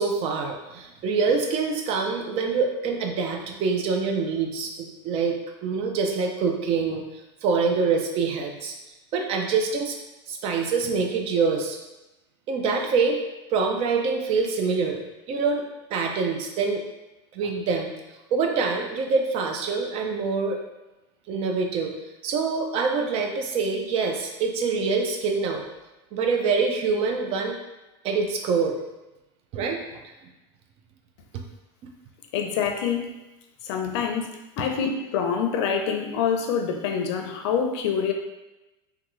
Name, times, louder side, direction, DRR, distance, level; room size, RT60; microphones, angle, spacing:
voice 1, 0.0-7.0 7.4-8.7 9.1-10.0 10.3-11.8 12.5-13.2 13.5-15.0 15.3-15.6 15.9-16.8 17.3-17.9 18.3-20.6 21.3-21.9 22.2-25.6 26.1-27.6 28.0-28.8 29.5-30.0, right 4 dB, 40° right, 3 dB, 0.5 m, -25 dB
voice 2, 32.3-33.1 33.6-34.3 34.6-38.1, left 7 dB, 70° left, 3 dB, 0.5 m, -26 dB
3.5 x 2.3 x 3.1 m, 1.0 s
supercardioid pair, 135°, 15 cm